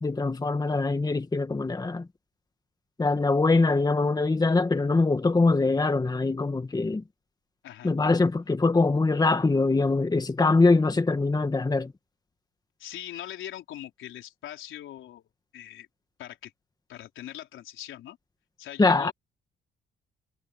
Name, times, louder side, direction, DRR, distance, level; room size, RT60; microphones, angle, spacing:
voice 1, 0.0-2.1 3.0-7.0 7.8-11.9 18.8-19.1, left 3 dB, 20° left, 1.6 m, -23 dB
voice 2, 12.8-15.2 15.5-15.9 16.2-16.5 16.9-18.2 18.6-19.1, left 12 dB, 80° left, 4.4 m, -41 dB
cardioid pair, 90°, 20 cm